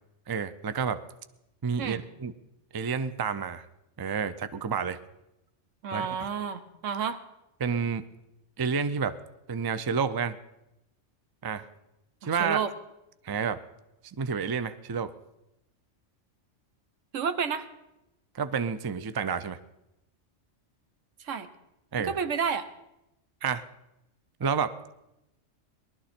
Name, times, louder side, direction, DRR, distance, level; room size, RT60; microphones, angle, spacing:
voice 1, 0.3-1.0 1.6-2.3 2.7-3.7 4.0-5.0 5.9-6.1 7.6-8.0 8.6-9.2 9.5-10.4 11.4-11.7 12.2-12.6 13.2-13.6 14.2-15.1 18.3-19.6 21.9-22.1 23.4-23.6 24.4-24.7, right 6 dB, 40° right, 13 dB, 0.3 m, -29 dB
voice 2, 5.8-7.2 12.2-12.7 17.1-17.7 21.2-21.5 22.0-22.6, right 6 dB, 85° right, 10 dB, 1.3 m, -30 dB
19.5 x 12.5 x 4.3 m, 0.89 s
omnidirectional pair, 1.3 m